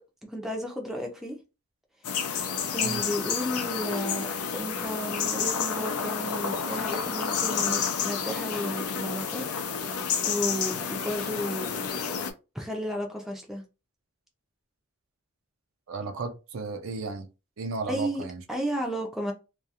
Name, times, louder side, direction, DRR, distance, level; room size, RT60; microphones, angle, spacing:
voice 1, 0.3-1.4 2.7-4.3 4.5-9.5 9.8-11.7 12.5-13.6 17.9-18.2 18.5-19.3, equal, ahead, 0.4 m, -33 dB
sound 1, 2.0-12.3, left 6 dB, 90° left, 0.5 m, -30 dB
voice 2, 15.9-17.3 17.6-18.4, right 3 dB, 60° right, 0.4 m, -34 dB
2.3 x 2.3 x 2.8 m
head